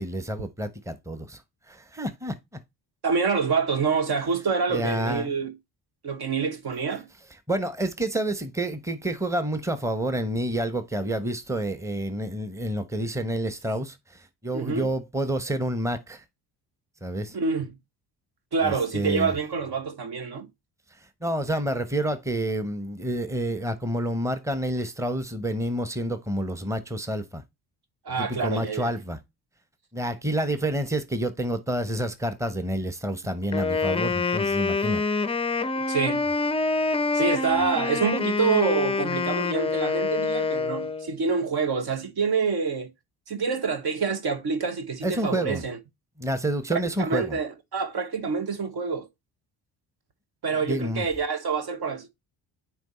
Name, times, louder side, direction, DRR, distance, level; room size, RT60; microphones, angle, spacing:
voice 1, 0.0-1.4 1.7-2.6 4.7-5.3 7.5-16.2 17.0-17.3 18.6-19.3 21.2-27.4 28.2-29.2 29.9-35.0 45.0-45.6 46.2-47.4 50.6-51.0, right 1 dB, 5° right, 1.0 m, -29 dB
voice 2, 3.0-5.6 6.0-7.1 14.5-14.9 17.3-17.8 18.5-20.5 28.0-28.9 35.7-36.3 37.1-42.9 43.3-45.8 47.0-49.1 50.4-52.1, right 5 dB, 50° right, 1.1 m, -27 dB
Wind instrument woodwind instrument, 33.5-41.1, left 3 dB, 10° left, 0.5 m, -26 dB
9.1 x 3.2 x 4.3 m
hypercardioid pair, 45°, 49 cm